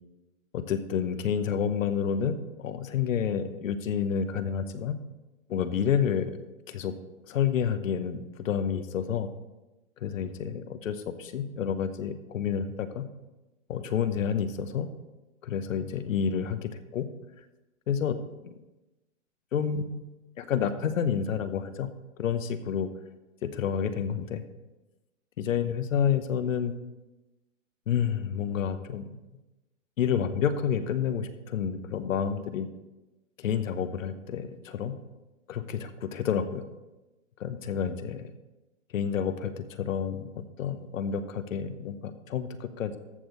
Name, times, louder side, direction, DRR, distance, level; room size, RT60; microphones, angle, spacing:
voice 1, 0.5-5.0 5.5-6.3 6.7-6.9 7.3-9.3 10.0-13.0 13.7-14.9 15.4-17.1 17.9-18.2 19.5-20.0 20.4-21.9 22.2-22.9 23.4-24.4 25.4-26.7 27.9-29.1 30.0-32.7 33.4-34.9 35.5-36.6 37.4-38.3 38.9-43.0, left 8 dB, 80° left, 10 dB, 1.1 m, -29 dB
14.0 x 6.2 x 4.0 m, 1.1 s
hypercardioid pair, 140°, 39 cm